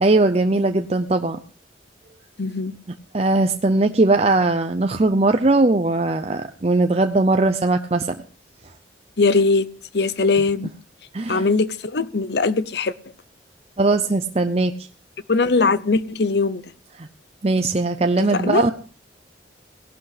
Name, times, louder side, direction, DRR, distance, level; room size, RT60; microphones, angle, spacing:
voice 1, 0.0-1.4 3.1-8.1 11.1-11.5 13.8-14.7 17.0-17.1 17.4-18.7, right 2 dB, 35° right, 0.6 m, -19 dB
voice 2, 2.4-2.8 9.2-9.7 9.9-10.7 11.3-12.9 15.3-16.6 18.2-18.6, left 3 dB, 60° left, 0.7 m, -20 dB
18.0 x 11.5 x 5.0 m
head